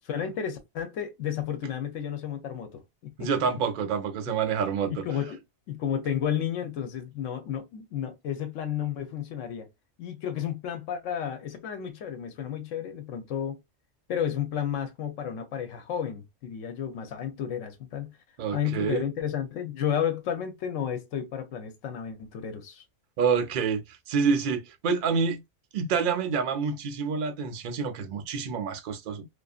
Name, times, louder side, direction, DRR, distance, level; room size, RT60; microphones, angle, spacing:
voice 1, 0.1-3.3 4.3-4.4 4.9-5.4 5.7-9.7 10.0-13.6 14.1-18.2 18.5-22.8, left 9 dB, 85° left, 1.0 m, -32 dB
voice 2, 3.2-5.1 18.4-19.0 23.2-25.4 25.7-29.3, right 5 dB, 60° right, 0.6 m, -27 dB
2.5 x 2.4 x 2.3 m
omnidirectional pair, 1.3 m